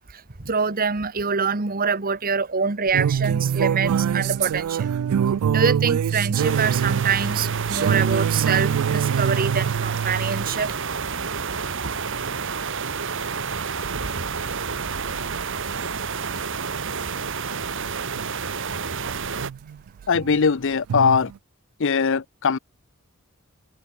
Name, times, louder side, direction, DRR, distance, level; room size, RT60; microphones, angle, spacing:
voice 1, 0.1-4.9 5.5-10.8, right 5 dB, 40° right, 1.3 m, -25 dB
sound 1, 2.9-10.6 13.8-14.1 14.5-15.6 17.8-17.9 18.1-18.5 19.1-20.4 20.9-21.3, right 8 dB, 80° right, 0.3 m, -24 dB
sound 2, 6.4-19.5, right 5 dB, 60° right, 1.8 m, -29 dB
voice 2, 20.1-21.3 21.8-22.6, left 5 dB, 60° left, 0.6 m, -20 dB
head